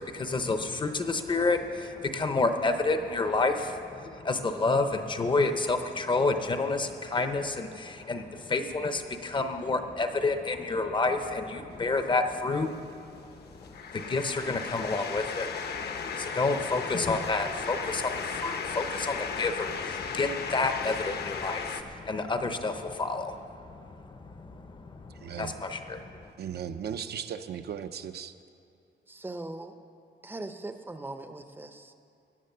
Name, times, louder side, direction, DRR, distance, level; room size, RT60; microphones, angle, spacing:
voice 1, 0.0-26.3, left 3 dB, 25° left, 7 dB, 0.7 m, -30 dB
sound 1, 11.7-21.8, left 6 dB, 60° left, 0.9 m, -36 dB
voice 2, 25.2-25.5 26.4-28.3, right 8 dB, 60° right, 9 dB, 0.6 m, -36 dB
voice 3, 29.1-29.8 30.2-31.9, right 2 dB, 10° right, 8 dB, 0.6 m, -40 dB
16.0 x 9.8 x 6.7 m, 2.5 s
wide cardioid pair, 180°, 19 cm